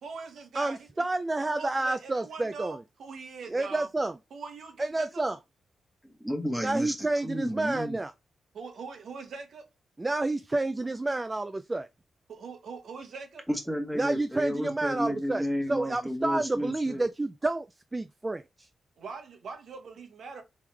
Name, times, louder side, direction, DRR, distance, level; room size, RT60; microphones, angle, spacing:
voice 1, 0.0-1.0 1.4-3.9 4.3-5.4 8.5-9.7 12.3-13.4 19.0-20.4, right 4 dB, 70° right, 1.0 m, -42 dB
voice 2, 0.5-2.8 3.5-4.1 4.8-5.4 6.6-8.1 10.0-11.9 14.0-15.4 15.7-17.7 17.9-18.7, right 2 dB, 20° right, 0.3 m, -29 dB
voice 3, 6.0-8.0 13.5-17.1, equal, ahead, 1.3 m, -32 dB
3.5 x 3.1 x 3.3 m
cardioid pair, 75°, 0 cm